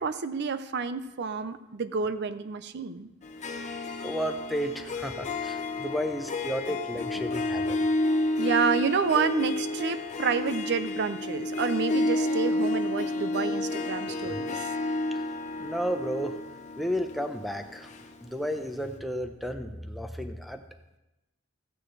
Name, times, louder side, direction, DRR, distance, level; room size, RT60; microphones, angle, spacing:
voice 1, 0.0-3.1 6.7-7.0 8.4-14.6, right 5 dB, 55° right, 12 dB, 0.5 m, -29 dB
Harp, 3.2-18.6, left 2 dB, 35° left, 0.7 m, -30 dB
voice 2, 4.0-7.9 14.3-14.4 15.1-15.2 15.6-16.4 16.7-17.9 18.2-20.6, equal, ahead, 7 dB, 0.6 m, -33 dB
14.0 x 9.0 x 3.2 m, 0.96 s
head